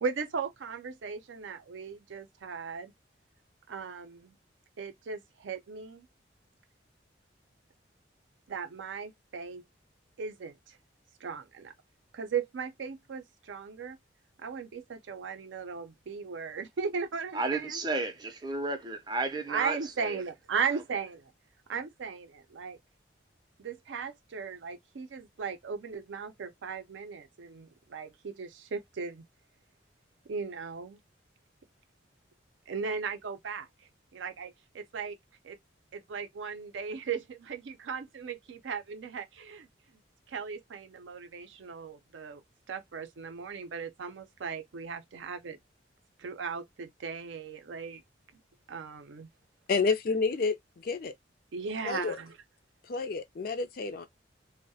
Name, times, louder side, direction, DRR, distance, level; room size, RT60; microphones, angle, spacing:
voice 1, 0.0-2.9 3.7-4.3 4.8-6.1 8.5-9.6 10.2-10.8 11.2-11.7 12.1-14.0 14.4-17.8 19.5-21.3 21.7-22.8 23.6-29.2 30.3-31.0 32.7-33.7 34.1-35.2 35.4-35.6 35.9-39.7 40.3-42.4 42.7-45.6 46.2-48.0 48.7-49.3 51.5-52.3, right 5 dB, 80° right, 0.4 m, -37 dB
voice 2, 17.3-20.2, right 3 dB, 20° right, 0.5 m, -33 dB
voice 3, 49.7-51.1 51.8-52.2 52.9-54.1, left 4 dB, 50° left, 0.4 m, -29 dB
2.2 x 2.0 x 2.6 m
head